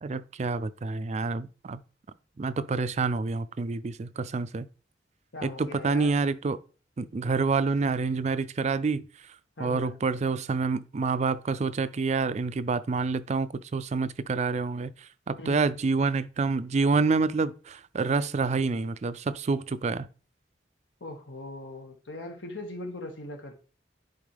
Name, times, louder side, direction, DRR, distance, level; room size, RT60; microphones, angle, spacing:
voice 1, 0.0-1.8 2.4-4.7 5.4-6.6 7.0-9.0 9.6-20.1, right 4 dB, 40° right, 0.4 m, -28 dB
voice 2, 5.3-6.1 9.6-10.0 15.4-15.7 21.0-23.5, left 1 dB, 85° left, 1.7 m, -40 dB
10.5 x 4.3 x 3.4 m
head